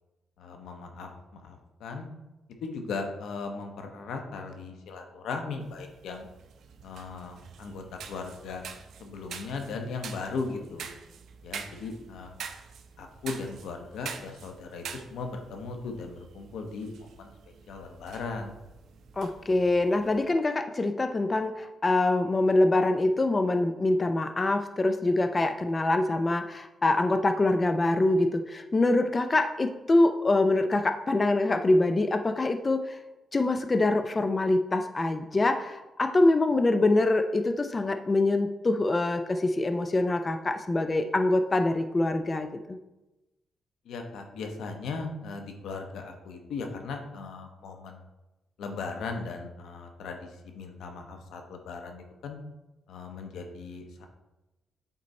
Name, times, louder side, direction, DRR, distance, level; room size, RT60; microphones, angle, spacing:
voice 1, 0.4-2.1 2.6-6.3 6.8-8.6 9.0-10.9 11.4-12.4 13.0-17.3 17.7-18.6 19.5-19.6 43.8-48.1 48.6-52.4 52.9-54.1, left 4 dB, 85° left, 4 dB, 1.0 m, -38 dB
sound 1, 5.6-20.2, right 7 dB, 75° right, 0.7 m, -46 dB
voice 2, 19.2-33.0 33.3-42.8, left 2 dB, 25° left, 7 dB, 0.4 m, -25 dB
8.5 x 4.0 x 4.2 m, 1.0 s
cardioid pair, 115°, 0 cm